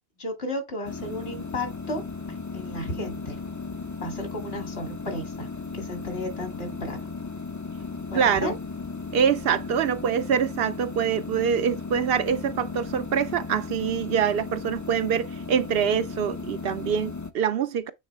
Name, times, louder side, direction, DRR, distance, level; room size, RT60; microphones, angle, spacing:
voice 1, 0.2-2.0 2.3-3.4 4.0-5.5 5.7-7.0 8.1-8.5, left 1 dB, 65° left, 2.5 m, -33 dB
sound 1, 0.8-17.3, left 4 dB, 25° left, 0.5 m, -36 dB
voice 2, 8.1-8.5 9.1-17.9, right 7 dB, 65° right, 0.7 m, -25 dB
8.4 x 3.9 x 3.4 m
omnidirectional pair, 1.1 m